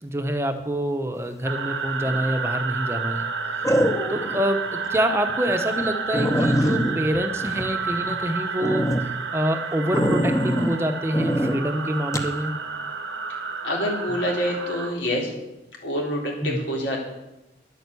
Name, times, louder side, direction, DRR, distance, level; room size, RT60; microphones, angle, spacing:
voice 1, 0.0-3.2 3.5-12.5 16.4-16.6, equal, 15° right, 6 dB, 0.9 m, -26 dB
sound 1, 1.4-14.9, right 5 dB, 90° right, 1.4 m, -30 dB
sound 2, 2.0-2.5 3.6-4.4 4.9-5.0 5.5-5.6 5.8-5.9 6.1-8.2 8.6-9.0 9.9-10.7 11.1-11.6 12.1-12.3, equal, 15° left, 0.9 m, -23 dB
voice 2, 13.6-15.3 15.8-17.0, left 1 dB, 85° left, -1 dB, 3.8 m, -26 dB
11.0 x 9.2 x 8.4 m, 0.95 s
head